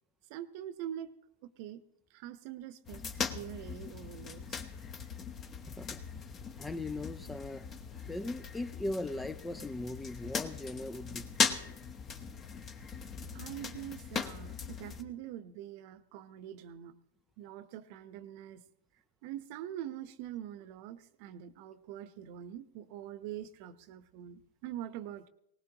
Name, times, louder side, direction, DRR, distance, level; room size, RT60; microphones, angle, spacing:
voice 1, 0.3-1.1 1.4-1.8 2.1-4.6 13.3-16.9 17.4-18.6 19.2-25.3, right 11 dB, 50° right, 0.9 m, -44 dB
sound 1, 2.9-15.0, left 5 dB, 30° left, 1.2 m, -39 dB
voice 2, 5.7-6.0 6.6-7.7 8.1-11.5, left 2 dB, 10° left, 0.5 m, -39 dB
20.0 x 19.0 x 3.0 m
hypercardioid pair, 110°, 0 cm